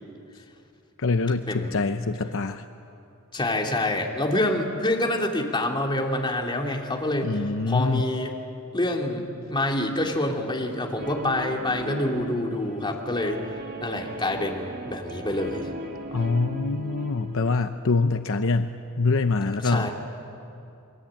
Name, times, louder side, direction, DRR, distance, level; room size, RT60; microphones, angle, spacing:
voice 1, 1.0-2.6 7.2-8.0 16.1-19.9, left 3 dB, 65° left, 8 dB, 0.8 m, -25 dB
voice 2, 3.3-7.3 7.7-8.3 8.7-13.4 13.8-15.7 19.6-19.9, left 1 dB, 20° left, 0 dB, 2.8 m, -26 dB
Guitar, 11.0-17.5, equal, 45° right, 1.9 m, -38 dB
29.0 x 22.5 x 8.8 m, 2.6 s
head